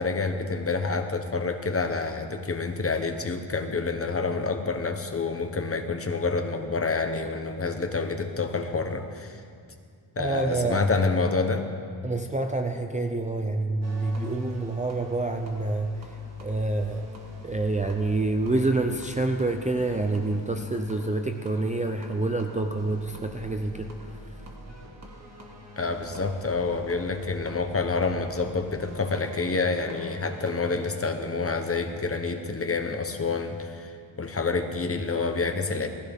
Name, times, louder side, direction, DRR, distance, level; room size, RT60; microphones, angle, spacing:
voice 1, 0.0-9.4 10.2-11.7 25.8-35.9, left 4 dB, 30° left, 6 dB, 0.9 m, -28 dB
voice 2, 10.2-10.9 12.0-17.1 17.4-24.3, right 2 dB, 15° right, 3 dB, 0.5 m, -27 dB
sound 1, 13.8-31.0, right 1 dB, 35° right, 2.0 m, -46 dB
18.0 x 15.5 x 3.6 m, 2.3 s
wide cardioid pair, 165°, 48 cm